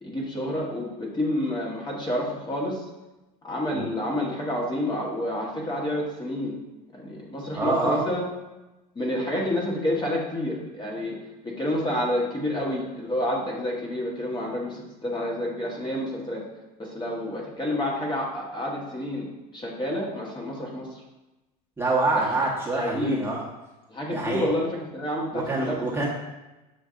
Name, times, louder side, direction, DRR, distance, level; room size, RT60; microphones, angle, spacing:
voice 1, 0.0-2.8 3.4-6.6 6.9-8.3 8.9-11.2 11.4-16.4 16.8-19.3 19.5-21.0 22.1-22.3 22.7-23.2 23.9-25.8, left 1 dB, 20° left, -3 dB, 1.2 m, -29 dB
voice 2, 7.5-8.0 21.8-23.4 24.1-24.5 25.3-26.1, right 3 dB, 10° right, -6 dB, 1.1 m, -26 dB
6.9 x 2.5 x 2.5 m, 1.0 s
hypercardioid pair, 85°, 21 cm